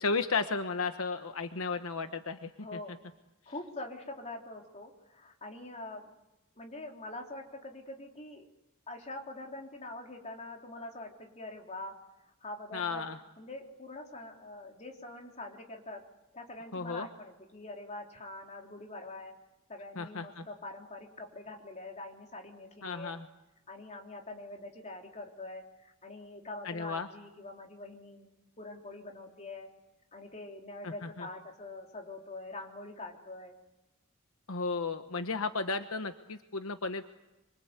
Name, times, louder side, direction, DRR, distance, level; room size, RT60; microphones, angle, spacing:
voice 1, 0.0-2.8 12.7-13.2 16.7-17.1 20.0-20.4 22.8-23.2 26.6-27.1 30.8-31.3 34.5-37.0, left 4 dB, 75° left, 8 dB, 1.1 m, -34 dB
voice 2, 2.6-3.0 3.5-6.1 6.6-8.5 8.9-12.0 12.4-16.0 16.3-19.4 19.7-23.1 23.7-28.3 28.6-29.7 30.1-33.6, left 2 dB, 35° left, 1 dB, 3.6 m, -44 dB
26.5 x 25.0 x 8.2 m, 0.98 s
head